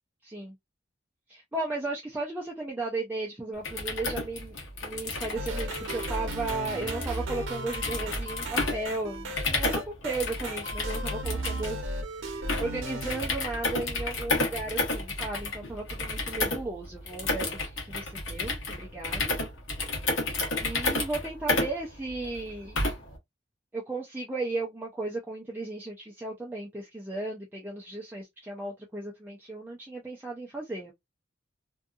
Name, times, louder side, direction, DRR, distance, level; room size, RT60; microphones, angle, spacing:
voice 1, 0.2-0.6 1.3-4.6 4.8-11.9 12.2-19.3 20.6-22.8 23.7-30.9, right 2 dB, 10° right, 0.5 m, -35 dB
sound 1, 3.5-23.2, left 2 dB, 85° left, 1.0 m, -32 dB
sound 2, 5.3-13.3, right 1 dB, 80° right, 0.8 m, -35 dB
2.7 x 2.4 x 2.4 m
head